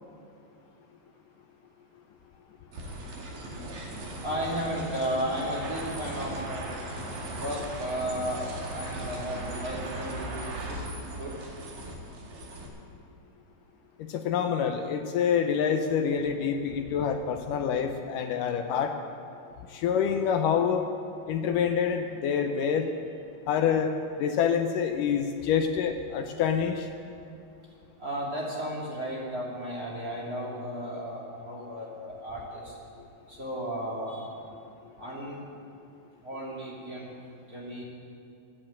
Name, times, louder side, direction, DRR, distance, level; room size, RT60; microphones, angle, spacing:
sound 1, 2.7-12.7, right 1 dB, 60° right, 3.5 m, -38 dB
voice 1, 4.2-6.7 7.4-10.8 11.2-11.3 28.0-32.8 33.3-34.3 35.0-35.4 36.2-37.1 37.5-37.8, equal, 25° right, -5 dB, 2.9 m, -34 dB
voice 2, 14.1-18.9 19.7-20.8 21.3-22.9 23.5-23.9 24.2-26.9, left 7 dB, 75° left, 5 dB, 2.3 m, -26 dB
14.0 x 9.9 x 8.8 m, 2.6 s
omnidirectional pair, 4.0 m